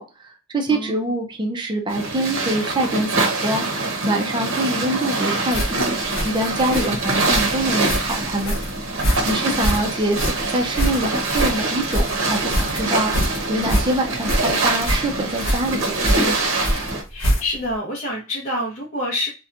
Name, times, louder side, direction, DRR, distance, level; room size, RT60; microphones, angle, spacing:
voice 1, 0.0-8.6 9.2-16.4, right 1 dB, 25° right, 2 dB, 0.4 m, -25 dB
voice 2, 0.7-1.1 17.1-19.3, left 1 dB, 40° left, -4 dB, 0.6 m, -27 dB
Ocean waves hitting bow of moving boat., 1.9-17.0, right 3 dB, 75° right, 0.8 m, -24 dB
sound 1, 5.5-17.7, equal, 65° left, 1.0 m, -25 dB
2.7 x 2.2 x 2.4 m, 0.31 s
head